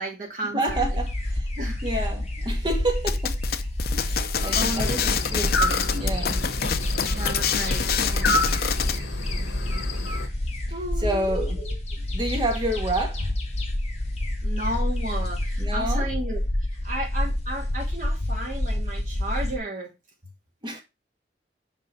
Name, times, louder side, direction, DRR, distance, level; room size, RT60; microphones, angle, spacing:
voice 1, 0.0-0.8 1.6-1.8 4.5-5.1 7.1-8.8 10.7-11.7 14.4-16.4 16.8-19.9, right 1 dB, 45° right, 2.8 m, -33 dB
voice 2, 0.5-1.5 1.8-3.4 3.9-6.4 10.7-11.6 12.1-13.3 15.6-16.1 20.6-20.8, right 1 dB, 25° right, 1.6 m, -29 dB
sound 1, 0.7-19.6, left 1 dB, 35° left, 1.6 m, -28 dB
sound 2, 3.1-9.0, left 7 dB, 55° left, 0.6 m, -27 dB
sound 3, 4.4-10.3, left 2 dB, 80° left, 1.5 m, -30 dB
5.3 x 5.3 x 5.6 m
head